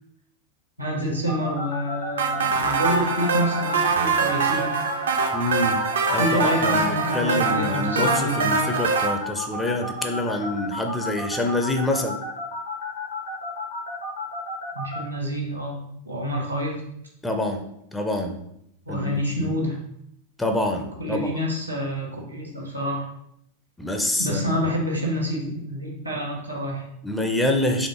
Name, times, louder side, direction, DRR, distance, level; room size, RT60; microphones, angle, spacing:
voice 1, 0.8-4.8 6.1-8.6 14.7-15.8 16.0-16.8 18.9-19.8 21.0-23.1 24.2-26.9, equal, 85° right, 0 dB, 1.0 m, -27 dB
sound 1, 1.3-15.0, left 2 dB, 70° left, 1.1 m, -32 dB
sound 2, 2.2-9.1, right 4 dB, 65° right, 0.5 m, -24 dB
voice 2, 5.3-5.8 6.1-8.1 8.4-12.2 17.2-17.6 17.9-18.4 18.9-19.5 20.4-21.3 23.8-24.6 27.0-27.9, left 1 dB, 5° left, 3 dB, 0.5 m, -26 dB
4.2 x 3.0 x 2.9 m, 0.76 s
figure-of-eight pair, 90°, 0 cm